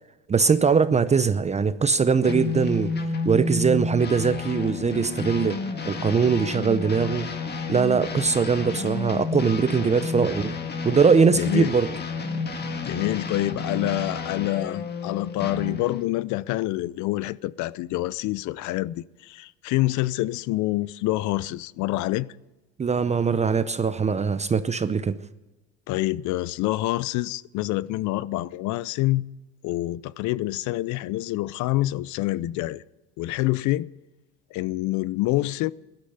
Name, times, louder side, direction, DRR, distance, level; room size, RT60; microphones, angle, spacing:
voice 1, 0.3-2.9 3.2-5.6 5.9-7.3 7.7-10.5 10.8-11.9 22.8-25.1, right 5 dB, 20° right, 0.6 m, -21 dB
sound 1, 2.2-16.0, left 4 dB, 30° left, 1.9 m, -30 dB
voice 2, 11.3-11.7 12.8-22.3 25.9-29.2 29.6-32.8 33.2-33.9 34.5-35.7, left 17 dB, 60° left, 0.6 m, -26 dB
16.5 x 12.0 x 6.7 m
supercardioid pair, 100°, 33 cm